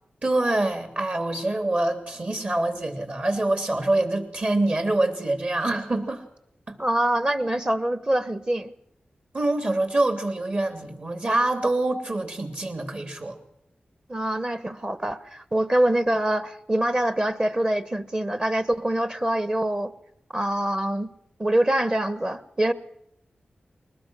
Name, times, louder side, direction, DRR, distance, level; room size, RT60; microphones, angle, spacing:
voice 1, 0.2-6.2 6.7-6.8 9.3-13.4, right 2 dB, 45° right, 7 dB, 3.1 m, -25 dB
voice 2, 6.8-8.7 14.1-19.9 20.3-21.1 21.4-22.7, right 1 dB, 25° right, 14 dB, 1.2 m, -24 dB
21.5 x 19.5 x 6.3 m, 0.77 s
wide cardioid pair, 70°, 3 cm